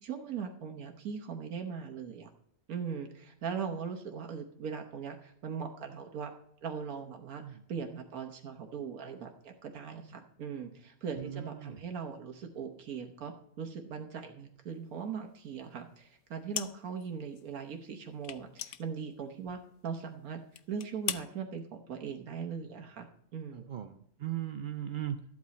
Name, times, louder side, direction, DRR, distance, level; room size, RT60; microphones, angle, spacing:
voice 1, 0.0-2.3 2.7-6.3 6.6-20.4 20.7-23.7, right 6 dB, 85° right, 4 dB, 1.5 m, -40 dB
voice 2, 11.2-11.8 23.5-25.4, right 11 dB, 60° right, 8 dB, 0.5 m, -38 dB
sound 1, 16.5-17.1 17.3-17.5 18.2-19.7 20.0-20.1 20.5-21.3, left 11 dB, 85° left, 1.1 m, -39 dB
14.0 x 8.6 x 4.1 m, 0.72 s
omnidirectional pair, 1.5 m